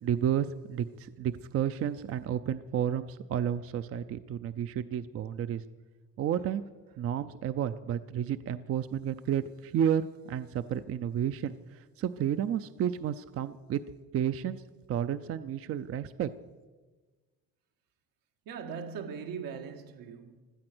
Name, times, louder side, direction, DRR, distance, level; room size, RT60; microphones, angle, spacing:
voice 1, 0.0-5.6 6.2-6.7 7.0-13.8 14.1-14.6 14.9-16.3, right 9 dB, 45° right, 0.5 m, -31 dB
voice 2, 18.5-20.4, right 6 dB, 85° right, 1.8 m, -40 dB
16.5 x 12.5 x 6.1 m
cardioid pair, 135°, 34 cm